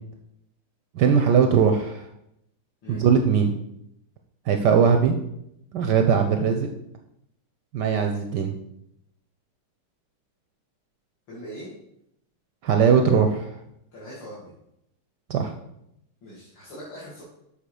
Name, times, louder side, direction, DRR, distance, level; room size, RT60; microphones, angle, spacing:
voice 1, 0.9-2.1 2.9-3.5 4.5-5.2 5.7-6.7 7.7-8.5 12.6-13.5 15.3-15.5, right 6 dB, 70° right, 5 dB, 1.0 m, -20 dB
voice 2, 11.3-11.7 13.9-14.5 16.2-17.2, equal, 60° left, -7 dB, 2.5 m, -41 dB
6.9 x 5.9 x 4.9 m, 0.79 s
omnidirectional pair, 2.3 m